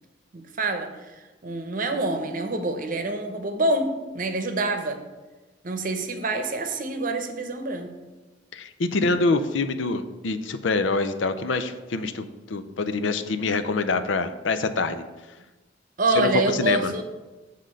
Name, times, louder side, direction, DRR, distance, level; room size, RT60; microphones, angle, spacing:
voice 1, 0.3-1.1 1.4-5.0 5.6-7.9 16.0-17.0, right 2 dB, 45° right, 6 dB, 0.8 m, -26 dB
voice 2, 8.5-15.0 16.1-16.9, left 3 dB, 85° left, 10 dB, 0.5 m, -25 dB
7.6 x 3.7 x 6.4 m, 1.2 s
head